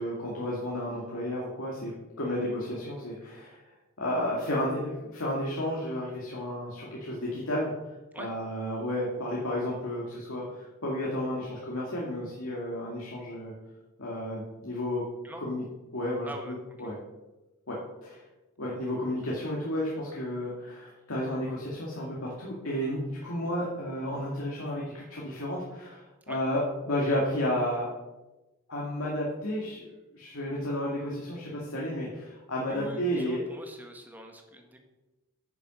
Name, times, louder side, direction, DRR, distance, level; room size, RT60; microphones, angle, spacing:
voice 1, 0.0-3.6 4.0-7.7 8.2-13.5 14.0-15.1 15.4-15.6 15.9-17.0 17.7-18.2 18.6-26.6 26.9-27.9 28.7-33.4, left 1 dB, 80° left, -4 dB, 2.2 m, -32 dB
voice 2, 16.2-16.6 26.3-26.4 32.7-34.8, right 1 dB, 10° right, 3 dB, 1.4 m, -43 dB
9.9 x 7.2 x 6.3 m, 1.1 s
head